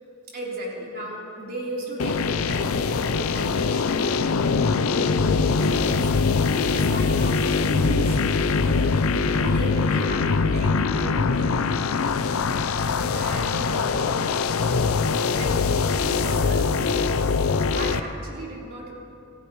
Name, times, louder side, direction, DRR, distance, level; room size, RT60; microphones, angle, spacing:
voice 1, 0.3-4.2 4.6-6.1 6.5-8.2 8.6-11.9 13.1-14.2 14.8-15.0 15.3-17.3 17.7-18.9, right 1 dB, 45° right, -5 dB, 3.6 m, -35 dB
sound 1, 2.0-18.0, left 4 dB, 85° left, 0.6 m, -23 dB
28.0 x 15.0 x 3.1 m, 2.7 s
head